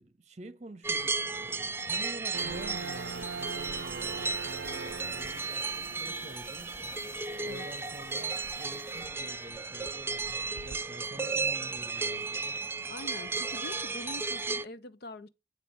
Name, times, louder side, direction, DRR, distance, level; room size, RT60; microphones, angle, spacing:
voice 1, 0.0-6.8 7.3-12.6, right 1 dB, 40° right, 1.1 m, -48 dB
sound 1, 0.8-14.7, right 4 dB, 15° right, 0.3 m, -34 dB
sound 2, 2.3-10.8, right 5 dB, 75° right, 0.5 m, -44 dB
sound 3, 2.4-9.1, equal, 5° left, 0.9 m, -52 dB
voice 2, 12.9-15.3, left 2 dB, 60° left, 0.7 m, -44 dB
9.3 x 3.2 x 5.4 m
head